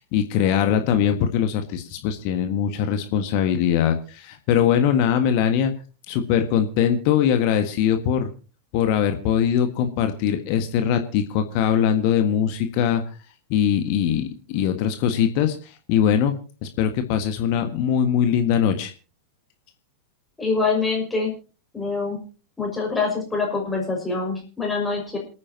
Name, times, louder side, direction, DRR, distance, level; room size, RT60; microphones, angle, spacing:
voice 1, 0.1-5.7 6.1-8.3 8.7-13.0 13.5-16.3 16.6-18.9, left 9 dB, 45° left, 7 dB, 1.7 m, -21 dB
voice 2, 20.4-21.3 21.7-22.2 22.6-25.2, left 4 dB, 10° left, 0 dB, 5.9 m, -25 dB
27.5 x 9.6 x 2.9 m, 0.36 s
figure-of-eight pair, 90°, 0 cm